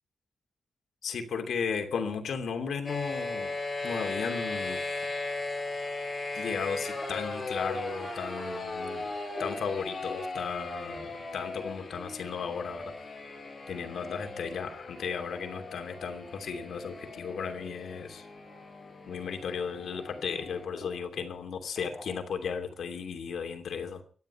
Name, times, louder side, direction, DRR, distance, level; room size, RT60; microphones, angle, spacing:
voice 1, 1.0-3.5 3.8-4.8 6.3-9.1 9.4-13.1 13.7-18.3 19.1-24.0, left 6 dB, 75° left, 6 dB, 2.8 m, -35 dB
sound 1, 2.9-20.7, left 2 dB, 35° left, 5.0 m, -37 dB
sound 2, 7.0-9.9 10.3-10.4 10.8-10.9 11.6-13.9 14.4-14.9 15.3-15.4 16.0-16.9 17.2-19.1 19.5-23.0, left 2 dB, 15° left, 7.6 m, -48 dB
24.5 x 10.5 x 4.5 m, 0.42 s
wide cardioid pair, 125°, 0 cm